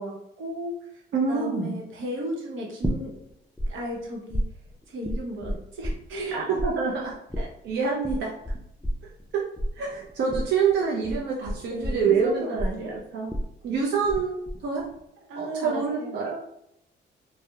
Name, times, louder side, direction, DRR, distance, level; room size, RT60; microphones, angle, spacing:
voice 1, 0.0-1.0 1.3-3.1 3.7-4.4 4.9-6.4 7.4-7.5 11.6-12.9 15.3-16.2, equal, 80° right, -2 dB, 0.8 m, -35 dB
voice 2, 1.1-1.8 6.3-7.1 7.6-8.3 9.3-9.5 9.8-13.3 13.6-14.8 15.4-16.4, right 5 dB, 60° right, -3 dB, 0.5 m, -26 dB
sound 1, 2.8-3.7 3.9-6.3 6.6-14.2 14.5-15.0, equal, 5° left, 0.3 m, -30 dB
2.7 x 2.0 x 2.2 m, 0.79 s
cardioid pair, 90°, 20 cm